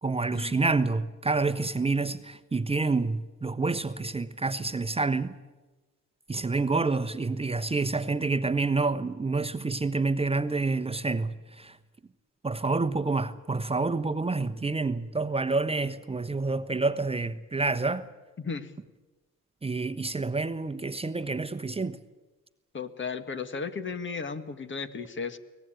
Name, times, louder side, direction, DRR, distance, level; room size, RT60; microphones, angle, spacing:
voice 1, 0.0-5.3 6.3-11.8 12.4-18.0 19.6-22.0, right 3 dB, 20° right, 1.0 m, -28 dB
voice 2, 18.4-18.7 22.7-25.4, left 5 dB, 40° left, 1.8 m, -35 dB
24.0 x 18.5 x 9.1 m
cardioid pair, 90°, 30 cm